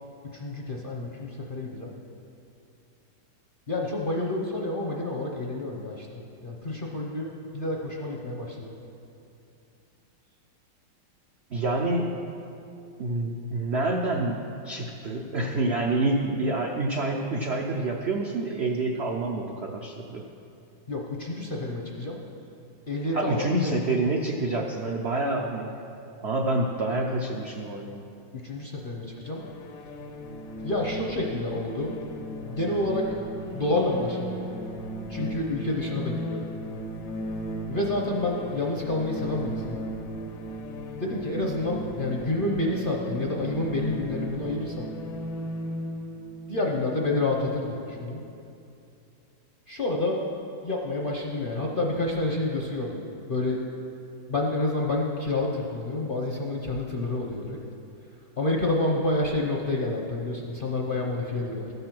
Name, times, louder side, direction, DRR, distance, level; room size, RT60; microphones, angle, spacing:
voice 1, 0.3-1.9 3.7-8.7 20.9-22.2 22.9-23.7 28.3-29.4 30.6-32.0 32.4-33.2 33.5-34.5 35.1-36.5 37.7-39.8 41.0-44.9 46.5-48.2 49.7-50.2 50.6-53.0 53.3-53.6 54.3-57.6 58.4-61.7, left 2 dB, 50° left, -1 dB, 0.6 m, -29 dB
voice 2, 11.5-12.2 13.0-20.2 23.1-25.7 26.2-28.1, right 2 dB, 80° right, 1 dB, 0.5 m, -27 dB
sound 1, 29.2-47.8, right 1 dB, 75° left, 1.4 m, -36 dB
14.0 x 5.4 x 5.9 m, 2.7 s
omnidirectional pair, 2.0 m